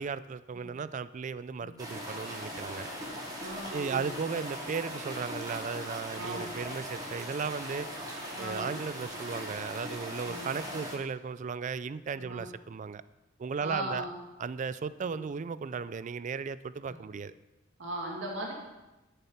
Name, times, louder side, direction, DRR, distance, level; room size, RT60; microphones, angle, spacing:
voice 1, 0.0-2.9 3.7-7.9 8.4-13.0 13.4-14.1 14.4-17.3, right 5 dB, 40° right, 16 dB, 0.3 m, -36 dB
sound 1, 1.8-10.9, equal, 20° right, 2.5 m, -40 dB
voice 2, 3.4-4.4 6.2-6.5 8.3-8.7 10.2-10.5 12.2-12.4 13.6-14.1 15.0-15.2 16.9-17.0 17.8-18.5, right 1 dB, 70° right, -2 dB, 2.4 m, -38 dB
12.5 x 6.9 x 5.7 m, 1.0 s
head